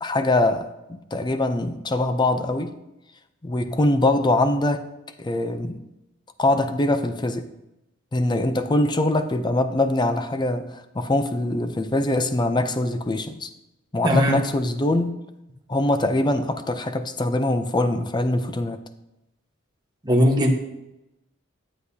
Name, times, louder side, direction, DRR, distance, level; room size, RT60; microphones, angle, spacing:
voice 1, 0.0-2.8 3.4-4.8 5.2-5.8 6.4-7.5 8.1-13.5 13.9-15.2 15.7-18.8, left 2 dB, 20° left, 0.5 m, -23 dB
voice 2, 14.0-14.4 20.0-20.6, equal, 20° right, 1.2 m, -19 dB
11.5 x 7.8 x 2.8 m
head